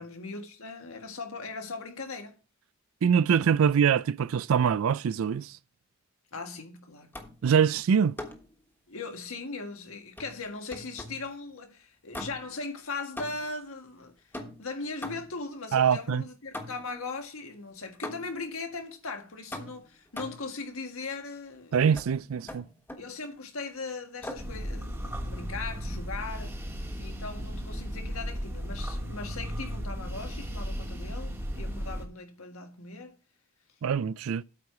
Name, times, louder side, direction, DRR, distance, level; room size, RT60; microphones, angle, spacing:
voice 1, 0.0-2.3 3.5-3.7 6.3-7.1 8.9-14.2 14.6-21.8 23.0-26.5 27.0-33.2, left 3 dB, 80° left, 1.6 m, -39 dB
voice 2, 3.0-5.5 7.4-8.1 15.7-16.2 21.7-22.6 33.8-34.4, right 7 dB, 80° right, 0.4 m, -24 dB
sound 1, 7.1-7.5 8.2-8.5 10.2-11.3 12.1-12.6 13.2-13.6 14.3-15.5 16.5-17.0 18.0-18.5 19.5-20.5 21.9-22.1 22.5-23.1 24.2-24.6, left 1 dB, 10° left, 1.3 m, -41 dB
sound 2, 24.4-32.1, equal, 10° right, 1.3 m, -35 dB
8.6 x 4.7 x 6.9 m
head